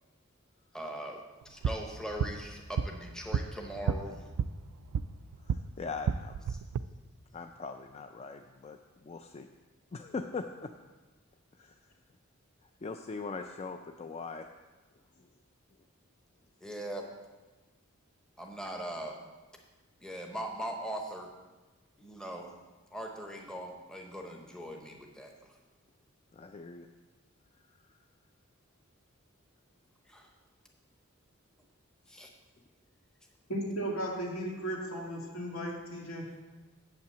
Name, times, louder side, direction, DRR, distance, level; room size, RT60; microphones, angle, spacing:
voice 1, 0.7-1.2 1.4-4.3 6.5-6.6 16.6-17.1 18.4-19.2 20.0-21.3 22.0-22.5 22.9-25.6 30.0-30.3 32.1-32.3, right 1 dB, 5° left, 1 dB, 0.8 m, -40 dB
sound 1, 1.4-5.7 6.0-6.8, right 6 dB, 90° right, 0.3 m, -33 dB
voice 2, 5.4-6.4 7.3-9.5 9.9-10.7 11.5-11.9 12.6-14.5 15.2-15.3 26.3-26.9 27.5-28.0 32.1-32.3, left 4 dB, 30° left, 6 dB, 0.3 m, -41 dB
voice 3, 33.5-36.2, right 1 dB, 75° left, -1 dB, 2.3 m, -35 dB
7.6 x 5.8 x 7.7 m, 1.2 s
head